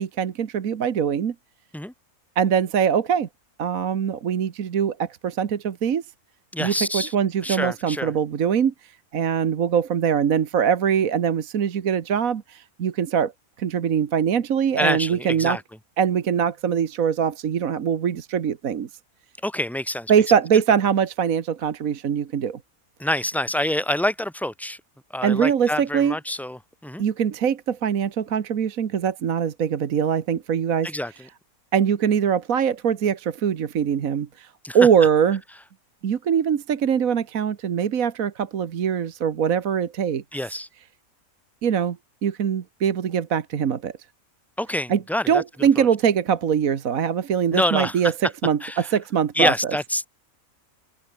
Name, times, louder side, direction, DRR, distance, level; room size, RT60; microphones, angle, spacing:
voice 1, 0.0-1.3 2.4-3.3 3.6-6.0 6.6-13.3 13.6-15.6 16.0-18.9 20.1-22.6 25.2-26.1 27.0-30.9 31.7-35.4 36.0-40.2 41.6-42.0 42.2-43.9 44.9-49.8, right 8 dB, 65° right, 1.6 m, -22 dB
voice 2, 6.5-7.1 7.4-8.1 14.8-15.6 19.4-20.1 23.0-24.8 25.1-27.0 30.8-31.1 34.6-34.8 40.3-40.7 44.6-45.4 45.8-45.9 47.5-47.9 48.6-48.9 49.4-50.1, left 1 dB, ahead, 0.7 m, -26 dB
open air
omnidirectional pair, 1.6 m